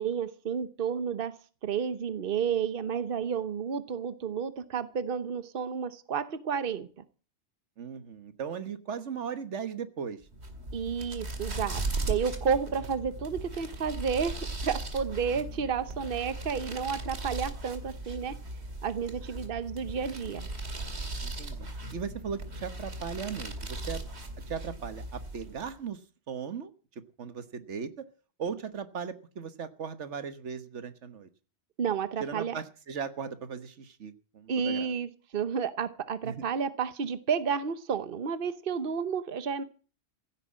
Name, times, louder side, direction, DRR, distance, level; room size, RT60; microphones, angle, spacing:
voice 1, 0.0-1.4 1.6-7.0 10.7-18.3 18.8-20.5 31.8-32.6 34.5-39.6, right 6 dB, 55° right, 13 dB, 1.2 m, -31 dB
voice 2, 7.8-10.2 21.2-24.1 24.5-26.0 26.3-26.7 27.2-28.0 28.4-31.3 32.2-34.9 36.2-36.3, right 6 dB, 90° right, 11 dB, 1.5 m, -37 dB
sound 1, 10.3-25.8, right 2 dB, 70° right, 2.5 m, -38 dB
16.0 x 9.1 x 7.5 m, 0.38 s
omnidirectional pair, 1.2 m